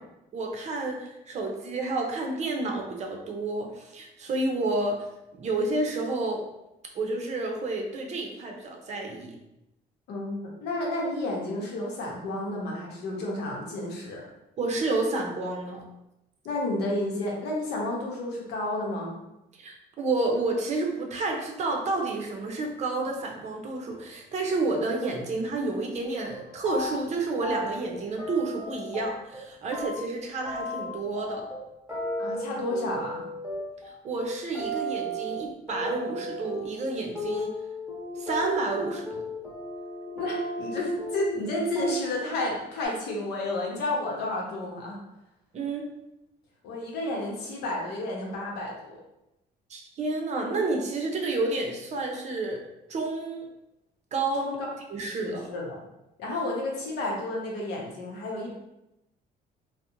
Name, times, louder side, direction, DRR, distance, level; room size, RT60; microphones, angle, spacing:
voice 1, 0.3-5.1 5.3-6.4 6.9-9.4 14.6-15.8 19.6-31.4 34.0-37.5 38.2-39.2 45.5-45.8 49.7-52.6 52.9-53.4 54.1-54.5 54.9-55.5, right 2 dB, 40° right, 1 dB, 0.5 m, -30 dB
voice 2, 10.1-14.3 16.4-19.2 32.2-33.3 40.1-45.0 46.6-49.0 54.3-54.6 55.0-55.8 56.2-58.5, left 1 dB, 80° left, -2 dB, 0.8 m, -31 dB
sound 1, 25.9-26.0 26.3-27.1 27.4-29.4 29.7-41.5 41.8-42.2 42.5-42.9, equal, 5° right, 0.9 m, -35 dB
2.4 x 2.0 x 2.8 m, 0.90 s
cardioid pair, 110°, 17 cm